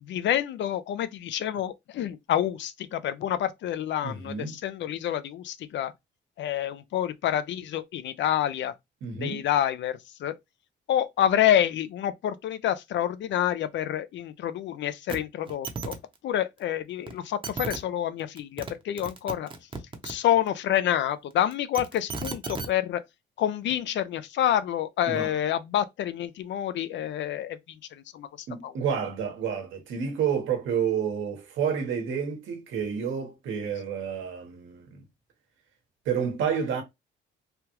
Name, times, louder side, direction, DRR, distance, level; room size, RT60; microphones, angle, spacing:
voice 1, 0.0-5.9 6.4-8.7 9.2-10.3 10.9-16.0 16.2-19.5 20.0-23.0 23.4-27.6 27.9-28.3 28.6-28.7, left 11 dB, 65° left, 0.5 m, -28 dB
voice 2, 4.0-4.6 9.0-9.4 25.1-25.3 28.5-35.0 36.0-36.8, right 7 dB, 80° right, 1.0 m, -29 dB
sound 1, 15.1-15.2 15.5-16.0 17.1-17.2 17.4-17.8 18.4-18.7 19.0-20.1 21.5-22.7 23.7-23.8, right 4 dB, 25° right, 0.7 m, -34 dB
3.4 x 2.3 x 2.9 m
cardioid pair, 90°, 20 cm